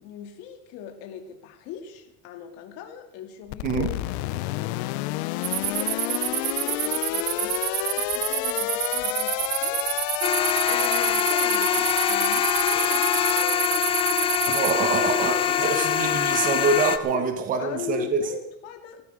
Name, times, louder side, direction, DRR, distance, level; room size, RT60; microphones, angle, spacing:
voice 1, 0.0-3.9 4.3-4.9 5.6-10.0 10.3-13.9 17.1-17.3 17.6-19.0, left 8 dB, 50° left, 5 dB, 2.0 m, -40 dB
sound 1, 3.5-13.4, left 18 dB, 80° left, 0.7 m, -29 dB
sound 2, 5.4-14.7, right 21 dB, 60° right, 0.6 m, -29 dB
sound 3, 10.2-17.0, left 9 dB, 15° left, 0.5 m, -24 dB
voice 2, 14.5-18.2, right 5 dB, 25° right, 7 dB, 1.2 m, -25 dB
17.0 x 14.5 x 5.0 m, 0.77 s
cardioid pair, 175°, 32 cm